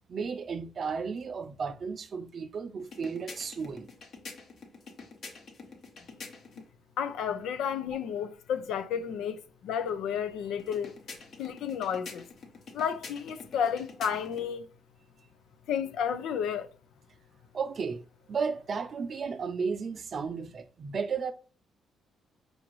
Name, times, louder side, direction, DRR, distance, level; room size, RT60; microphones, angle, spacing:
voice 1, 0.1-3.9 17.5-21.3, right 5 dB, 50° right, 0.5 m, -34 dB
sound 1, 2.8-6.7 10.6-14.5, left 4 dB, 55° left, 1.0 m, -47 dB
voice 2, 7.0-10.9 11.4-12.2 12.7-14.6 15.7-16.7, left 8 dB, 85° left, 0.5 m, -32 dB
4.8 x 2.6 x 3.0 m
cardioid pair, 90°, 0 cm